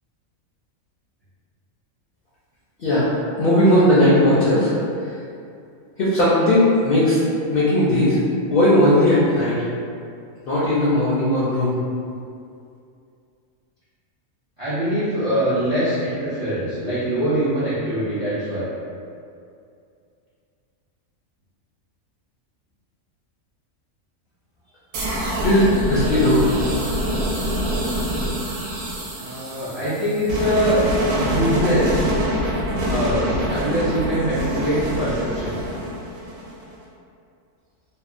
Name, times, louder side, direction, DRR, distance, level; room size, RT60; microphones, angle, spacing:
voice 1, 3.4-4.7 6.0-7.2 7.5-8.2 8.5-9.6 10.5-11.7 25.4-26.4, left 1 dB, 70° left, -10 dB, 0.5 m, -17 dB
voice 2, 14.6-18.6 29.2-30.8 31.1-32.0 32.9-35.6, equal, 60° right, -12 dB, 0.4 m, -23 dB
sound 1, 24.9-36.7, equal, 80° right, 1.0 m, -25 dB
2.7 x 2.1 x 2.4 m, 2.5 s
omnidirectional pair, 1.4 m